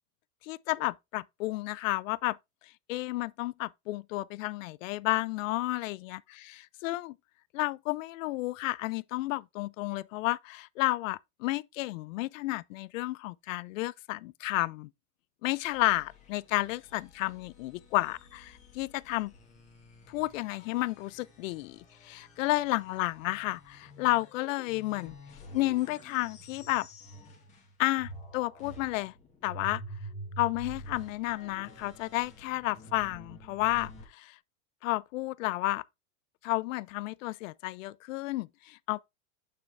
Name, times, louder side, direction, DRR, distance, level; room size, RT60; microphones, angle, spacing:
voice 1, 0.4-2.4 2.9-7.1 7.5-14.9 15.4-19.3 20.1-25.1 25.5-26.9 27.8-29.1 29.4-29.8 30.4-34.4 34.8-35.8 36.4-39.0, left 19 dB, 65° left, 0.5 m, -32 dB
sound 1, 15.5-27.7 28.0-34.0, equal, 15° left, 1.7 m, -48 dB
6.4 x 5.7 x 3.4 m
supercardioid pair, 165°, 42 cm